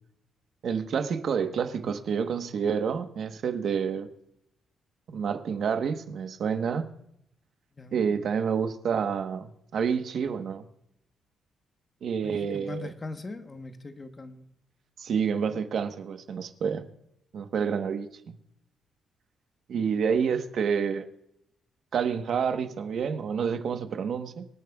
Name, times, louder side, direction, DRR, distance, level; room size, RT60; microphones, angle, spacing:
voice 1, 0.6-4.1 5.1-6.8 7.9-10.7 12.0-12.9 15.0-16.8 17.3-18.4 19.7-21.0 21.9-24.5, right 6 dB, 55° right, 8 dB, 1.1 m, -28 dB
voice 2, 7.8-8.2 12.2-14.5, left 3 dB, 25° left, 7 dB, 1.0 m, -41 dB
26.0 x 9.0 x 2.3 m, 0.77 s
cardioid pair, 155°, 0 cm